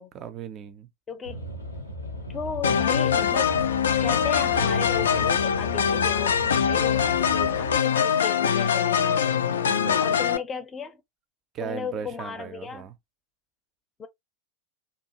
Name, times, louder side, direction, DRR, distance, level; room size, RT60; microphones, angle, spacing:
voice 1, 0.1-0.9 8.1-8.2 9.6-10.3 11.5-12.9, right 8 dB, 30° right, 0.5 m, -37 dB
voice 2, 1.1-1.4 2.3-3.6 4.0-9.3 10.0-11.0 11.6-12.9 14.0-14.1, left 6 dB, 20° left, 0.5 m, -35 dB
sound 1, 1.2-7.8, right 1 dB, 80° left, 0.7 m, -36 dB
sound 2, 2.6-10.4, left 8 dB, 65° left, 0.3 m, -23 dB
2.8 x 2.4 x 2.8 m
figure-of-eight pair, 90°, 0 cm